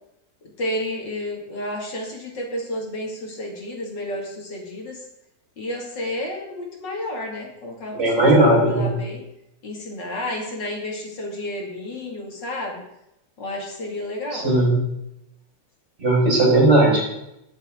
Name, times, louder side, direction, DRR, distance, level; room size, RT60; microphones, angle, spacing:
voice 1, 0.6-5.0 5.6-9.2 9.6-12.8 13.4-14.5, left 1 dB, 85° left, 0 dB, 3.1 m, -31 dB
voice 2, 7.9-8.9 14.3-14.8 16.0-17.2, right 1 dB, 40° right, -4 dB, 5.8 m, -17 dB
20.0 x 7.4 x 3.8 m, 0.85 s
omnidirectional pair, 1.9 m